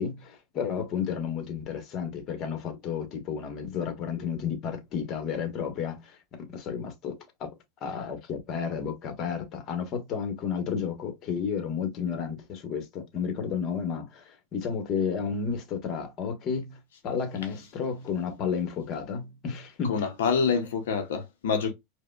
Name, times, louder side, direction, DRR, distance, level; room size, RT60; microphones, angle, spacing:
voice 1, 0.0-7.5 7.8-16.8 17.0-20.1, left 6 dB, 45° left, 1.0 m, -32 dB
voice 2, 19.8-21.7, left 6 dB, 85° left, 0.6 m, -26 dB
4.8 x 2.1 x 2.3 m
supercardioid pair, 115°, 0 cm